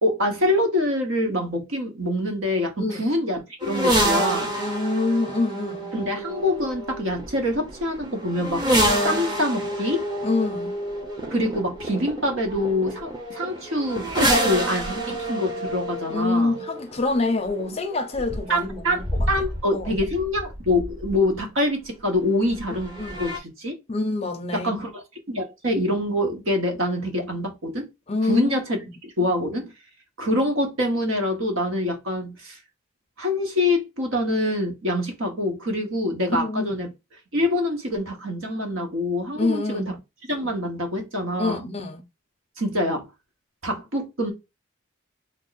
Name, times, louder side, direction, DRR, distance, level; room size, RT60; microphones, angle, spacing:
voice 1, 0.0-4.5 5.9-8.7 9.0-10.1 11.3-16.6 18.5-23.7 24.5-27.9 28.2-29.7 30.2-32.6 33.2-36.9 37.3-39.9 40.3-41.6 42.6-43.1 43.6-44.3, left 1 dB, 75° right, 1.1 m, -25 dB
sound 1, 3.6-21.4 22.5-23.4, right 1 dB, 20° right, 0.8 m, -28 dB
voice 2, 4.6-5.9 10.2-10.8 16.1-19.0 19.7-20.0 23.0-23.3 23.9-24.8 28.1-28.5 28.8-28.9 36.3-36.9 39.3-39.9 41.4-42.0, left 3 dB, 30° left, 0.5 m, -26 dB
3.4 x 2.1 x 4.0 m
head